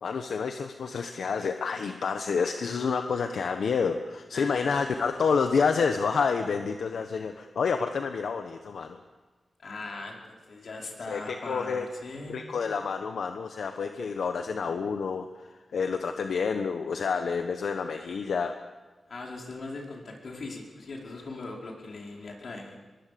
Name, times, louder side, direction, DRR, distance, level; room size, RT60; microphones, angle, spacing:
voice 1, 0.0-9.0 11.1-11.9 12.3-18.6, left 5 dB, 85° left, 6 dB, 1.2 m, -29 dB
voice 2, 4.3-5.4 9.6-12.4 19.1-22.8, left 3 dB, 65° left, 0 dB, 5.0 m, -40 dB
24.5 x 22.0 x 7.0 m, 1.3 s
wide cardioid pair, 95°, 0 cm